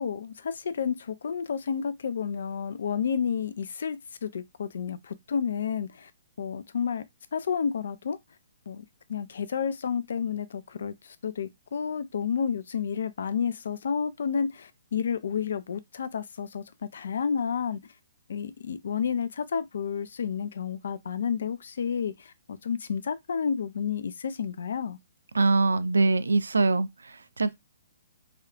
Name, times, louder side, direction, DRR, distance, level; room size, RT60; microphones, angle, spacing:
voice 1, 0.0-6.1 6.4-7.1 7.3-8.2 8.7-8.8 9.1-10.9 11.2-17.8 18.3-25.0, left 7 dB, 60° left, 0.3 m, -30 dB
voice 2, 25.3-27.6, right 3 dB, 75° right, 0.3 m, -23 dB
3.4 x 2.3 x 2.3 m
figure-of-eight pair, 125°, 0 cm